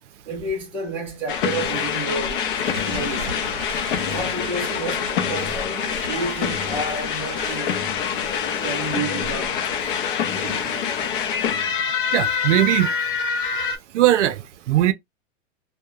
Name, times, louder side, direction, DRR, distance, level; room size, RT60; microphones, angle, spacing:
voice 1, 0.2-2.5 2.8-3.5 4.0-7.7 8.6-9.6, right 2 dB, 5° right, 0.5 m, -30 dB
sound 1, 1.3-13.8, left 7 dB, 45° left, 0.5 m, -25 dB
sound 2, 2.3-8.2, right 4 dB, 50° right, 0.8 m, -38 dB
voice 2, 10.4-10.8 12.1-12.9 13.9-14.4 14.7-14.9, right 13 dB, 75° right, 0.5 m, -19 dB
2.8 x 2.1 x 2.2 m
supercardioid pair, 165°, 37 cm